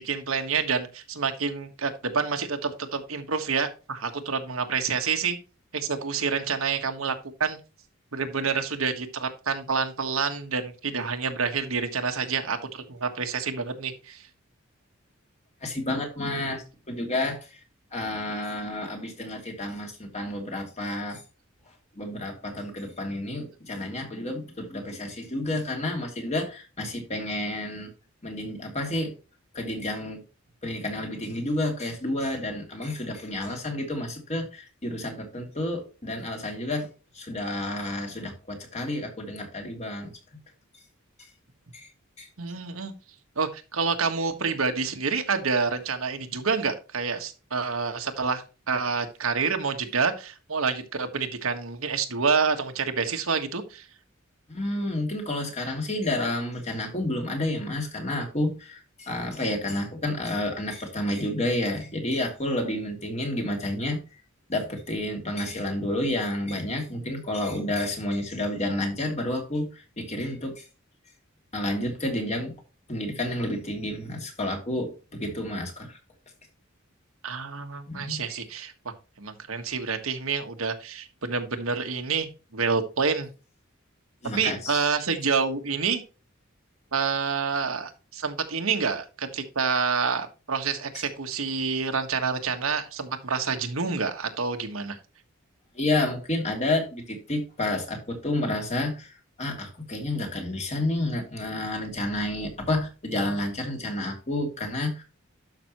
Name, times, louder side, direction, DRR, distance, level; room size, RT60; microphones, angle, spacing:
voice 1, 0.0-5.4 5.7-7.1 7.4-7.6 8.1-14.3 33.5-33.6 42.4-42.9 43.4-53.9 77.2-83.3 84.2-86.0 86.9-95.0, right 5 dB, 80° right, 1.5 m, -28 dB
voice 2, 15.6-17.6 17.9-21.2 21.9-27.9 28.2-29.1 29.5-30.2 30.6-36.9 37.1-40.1 41.7-41.9 42.2-42.3 54.5-64.0 64.5-70.6 71.5-72.5 72.9-76.0 77.9-78.4 84.2-84.8 90.9-91.1 95.7-105.0, left 1 dB, 35° left, 2.9 m, -30 dB
12.0 x 6.0 x 3.1 m
head